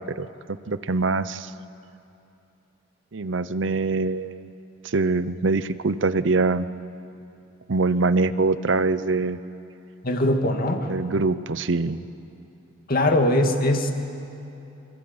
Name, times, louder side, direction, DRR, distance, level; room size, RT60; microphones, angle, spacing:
voice 1, 0.7-1.5 3.1-4.5 4.8-6.7 7.7-9.4 10.9-12.0, right 3 dB, 70° right, 14 dB, 0.8 m, -23 dB
voice 2, 10.0-10.9 12.9-13.9, left 1 dB, 50° left, 4 dB, 2.4 m, -21 dB
26.5 x 24.0 x 8.8 m, 2.9 s
head